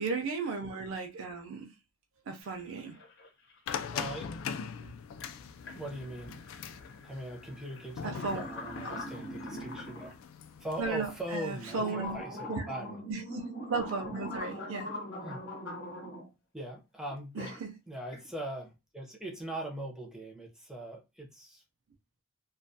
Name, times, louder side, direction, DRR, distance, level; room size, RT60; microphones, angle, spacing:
voice 1, 0.0-1.7 2.3-3.0 4.8-4.9 8.0-8.5 8.8-8.9 10.8-12.2 12.5-12.7 13.1-14.9 17.4-17.8, right 4 dB, 85° right, 0.4 m, -35 dB
sound 1, 2.4-2.5 2.8-3.6 5.2-5.3 5.6-10.1 10.7-10.8 11.4-16.3 17.1-17.6 18.0-18.3, left 1 dB, 65° left, 0.9 m, -42 dB
sound 2, 3.7-11.8, left 6 dB, 80° left, 0.3 m, -42 dB
voice 2, 3.9-4.3 5.7-6.5 7.0-10.2 10.6-13.0 15.2-15.4 16.5-17.4 17.9-21.6, right 1 dB, 5° right, 0.5 m, -40 dB
2.3 x 2.2 x 2.6 m
head